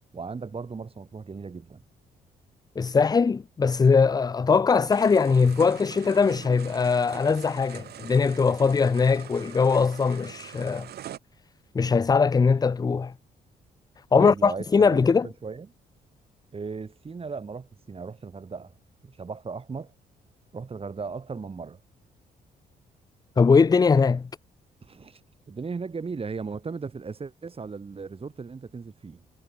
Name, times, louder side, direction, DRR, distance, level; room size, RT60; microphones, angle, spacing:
voice 1, 0.1-1.8 14.1-15.7 16.5-18.8 19.0-19.9 20.5-21.8 24.8-25.2 25.5-29.2, right 5 dB, 35° right, 2.4 m, -37 dB
voice 2, 2.8-10.9 11.7-13.1 14.1-15.3 23.4-24.3, left 5 dB, 25° left, 0.4 m, -21 dB
sound 1, 4.9-11.2, right 11 dB, 75° right, 3.8 m, -43 dB
cardioid pair, 75°, 17 cm